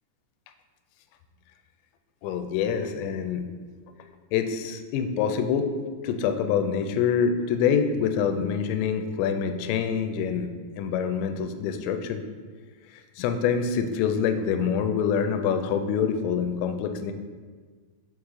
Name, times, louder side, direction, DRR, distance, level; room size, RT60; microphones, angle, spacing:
voice 1, 2.2-3.4 4.0-5.7 6.0-10.5 10.8-12.2 12.9-17.1, left 7 dB, 85° left, 7 dB, 2.7 m, -26 dB
6.2 x 4.8 x 3.6 m, 1.5 s
omnidirectional pair, 5.2 m